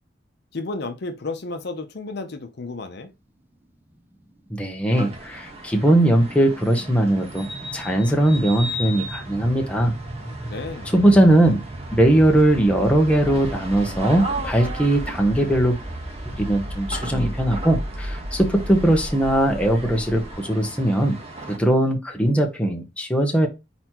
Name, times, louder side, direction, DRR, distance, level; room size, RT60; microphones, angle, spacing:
voice 1, 0.5-3.1 10.2-10.9, left 3 dB, 60° left, 0.7 m, -32 dB
voice 2, 4.5-7.5 7.7-9.9 10.9-11.6 11.9-15.8 16.4-21.2 21.5-23.5, right 1 dB, 5° left, 0.9 m, -19 dB
sound 1, 4.5-20.4, equal, 10° right, 0.5 m, -35 dB
sound 2, 4.9-21.6, right 1 dB, 35° right, 1.2 m, -37 dB
4.4 x 4.1 x 2.9 m
head